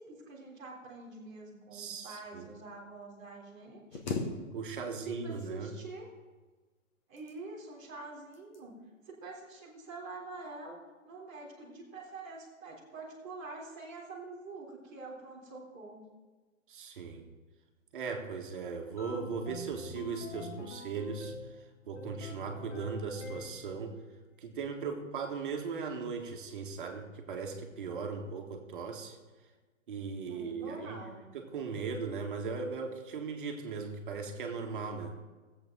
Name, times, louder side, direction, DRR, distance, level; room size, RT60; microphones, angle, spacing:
voice 1, 0.0-4.0 4.9-6.1 7.1-8.7 9.0-10.8 11.0-16.0 30.3-31.3, right 3 dB, 5° right, -11 dB, 0.5 m, -46 dB
voice 2, 1.7-2.5 4.5-5.7 16.7-17.2 17.9-21.3 21.9-23.9 24.4-29.2 29.9-31.0 31.3-35.1, right 5 dB, 40° right, 3 dB, 1.6 m, -38 dB
sound 1, 3.9-5.0 5.3-6.0 6.9-7.7 8.3-8.7 9.1-9.4, left 4 dB, 35° left, 1.3 m, -39 dB
sound 2, 19.0-21.6 22.0-23.8, left 3 dB, 60° left, 1.6 m, -45 dB
17.0 x 7.9 x 3.8 m, 1.3 s
hypercardioid pair, 160°, 39 cm